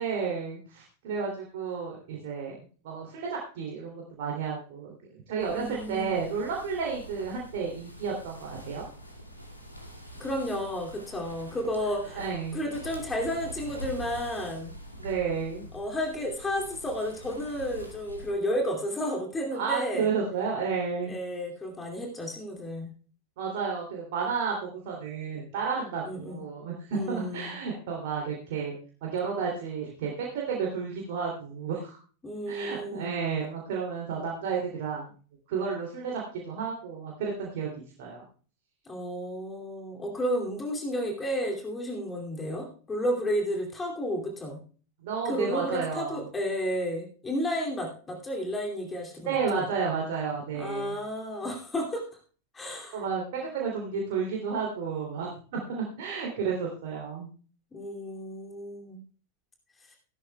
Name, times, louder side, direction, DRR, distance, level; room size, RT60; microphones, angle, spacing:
voice 1, 0.0-2.6 2.8-4.9 5.3-8.8 11.8-12.6 15.0-15.6 19.5-21.1 23.4-28.8 29.0-32.0 32.5-35.1 35.5-38.2 45.0-46.2 49.3-50.9 52.9-55.3 55.7-57.3, right 5 dB, 50° right, -1 dB, 2.9 m, -32 dB
sound 1, 5.4-18.3, equal, 85° left, 2.2 m, -45 dB
voice 2, 5.5-6.1 10.2-12.2 12.5-14.7 15.7-20.1 21.1-22.9 26.0-26.4 26.9-27.5 32.2-33.1 38.8-44.6 45.2-49.7 50.5-52.0 52.5-53.0 57.7-59.0 59.8-60.0, equal, 15° left, 1 dB, 2.6 m, -32 dB
16.5 x 12.5 x 2.3 m, 0.41 s
figure-of-eight pair, 90°, 0 cm